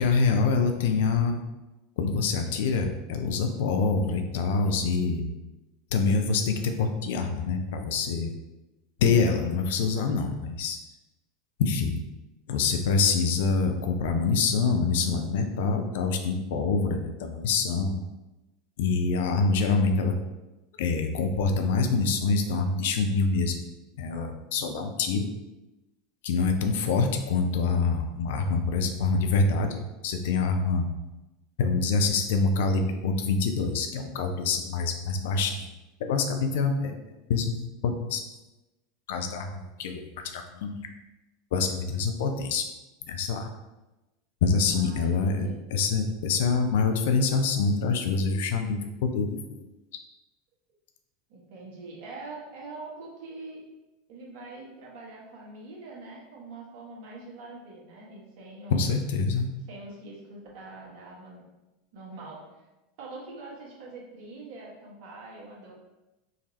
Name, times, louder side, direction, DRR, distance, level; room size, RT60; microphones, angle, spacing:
voice 1, 0.0-1.4 2.0-5.2 5.9-8.3 9.0-10.8 11.6-12.0 12.5-18.0 18.8-20.1 20.8-23.6 24.0-25.3 26.2-30.9 31.6-35.7 36.0-37.0 37.3-38.2 39.1-40.9 41.5-42.6 43.0-43.5 44.4-49.6 58.7-59.5, left 4 dB, 60° left, 5 dB, 0.5 m, -26 dB
voice 2, 44.7-45.6 51.3-53.6 54.1-58.8 59.7-61.4 61.9-62.4 63.0-65.7, right 3 dB, 55° right, -4 dB, 1.4 m, -44 dB
5.0 x 2.6 x 3.1 m, 1.0 s
figure-of-eight pair, 80°, 0 cm